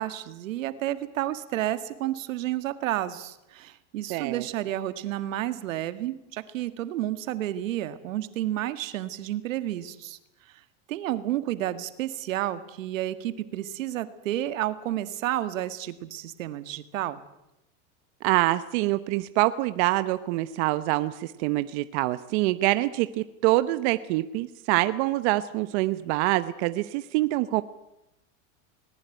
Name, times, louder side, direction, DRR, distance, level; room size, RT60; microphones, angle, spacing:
voice 1, 0.0-10.2 10.9-17.2, right 13 dB, 85° right, 12 dB, 1.9 m, -31 dB
voice 2, 4.1-4.5 18.2-27.6, right 18 dB, 60° right, 13 dB, 1.0 m, -25 dB
20.0 x 20.0 x 9.3 m, 0.87 s
supercardioid pair, 140°, 38 cm